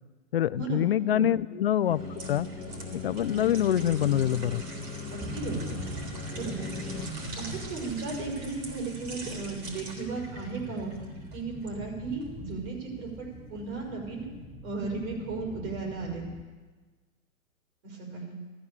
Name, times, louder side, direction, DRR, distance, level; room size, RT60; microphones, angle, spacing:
voice 1, 0.3-2.0 2.3-2.5 2.9-4.6, left 11 dB, 45° left, 18 dB, 0.4 m, -25 dB
sound 1, 1.8-11.8 12.2-12.4, right 2 dB, 30° right, 3.5 m, -42 dB
sound 2, 1.9-7.1, left 5 dB, 20° left, 1.4 m, -39 dB
voice 2, 5.1-5.8 6.3-6.6 7.4-10.9 11.3-14.3 14.6-16.2 17.8-18.4, right 4 dB, 50° right, -1 dB, 5.7 m, -35 dB
sound 3, 5.2-16.4, equal, ahead, 0.6 m, -43 dB
14.5 x 13.5 x 6.9 m, 1.3 s
hypercardioid pair, 140°, 42 cm